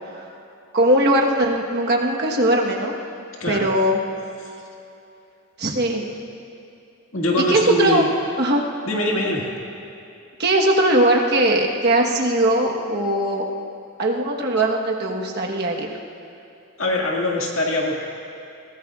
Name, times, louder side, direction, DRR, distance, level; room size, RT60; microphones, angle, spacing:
voice 1, 0.7-2.9 3.5-4.0 5.6-6.0 7.5-8.0 8.4-8.7 10.4-13.5 14.0-16.0, right 1 dB, 45° right, 0 dB, 1.2 m, -20 dB
voice 2, 3.4-3.7 4.4-4.5 7.1-8.1 8.9-9.5 16.8-18.0, left 1 dB, 65° left, -1 dB, 2.0 m, -22 dB
22.0 x 16.0 x 2.4 m, 2.7 s
head